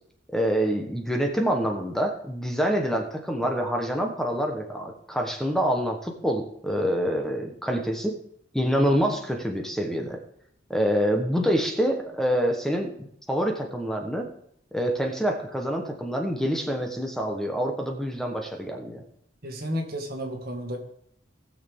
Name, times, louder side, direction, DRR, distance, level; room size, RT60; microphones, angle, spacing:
voice 1, 0.3-8.2 8.5-10.2 10.7-14.3 14.7-19.0, equal, ahead, 2 dB, 1.0 m, -26 dB
voice 2, 19.4-20.8, equal, 55° right, 2 dB, 1.9 m, -32 dB
19.0 x 6.5 x 3.6 m, 0.68 s
head